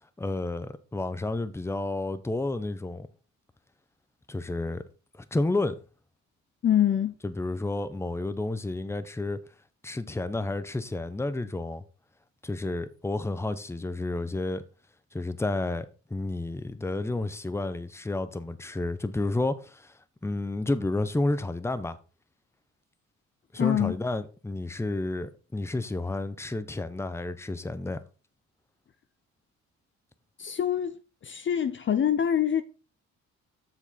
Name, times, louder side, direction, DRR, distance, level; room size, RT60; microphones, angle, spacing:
voice 1, 0.2-3.1 4.3-4.8 5.2-5.8 7.2-9.4 9.8-11.8 12.4-14.6 15.1-19.9 20.2-22.0 23.5-28.0, left 2 dB, 10° left, 0.8 m, -31 dB
voice 2, 6.6-7.1 23.6-24.0 30.4-30.9 31.3-32.6, left 9 dB, 40° left, 0.6 m, -24 dB
7.5 x 6.6 x 4.1 m
cardioid pair, 90°, 30 cm